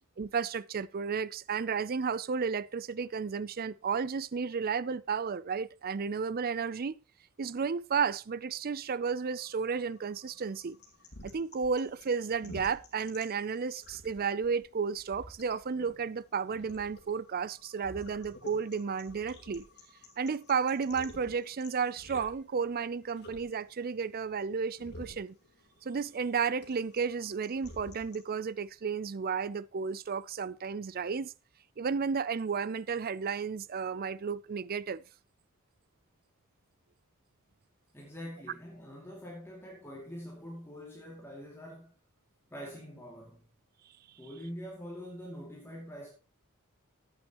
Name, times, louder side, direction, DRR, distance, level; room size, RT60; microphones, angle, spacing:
voice 1, 0.2-6.9 7.4-10.8 11.2-19.6 20.2-25.4 25.8-31.3 31.8-35.0, right 5 dB, 40° right, 0.4 m, -33 dB
sound 1, 9.3-28.3, left 1 dB, 50° left, 3.5 m, -52 dB
voice 2, 37.9-42.0 42.5-43.5 44.2-46.1, equal, 10° left, 2.5 m, -44 dB
14.0 x 9.1 x 3.0 m
head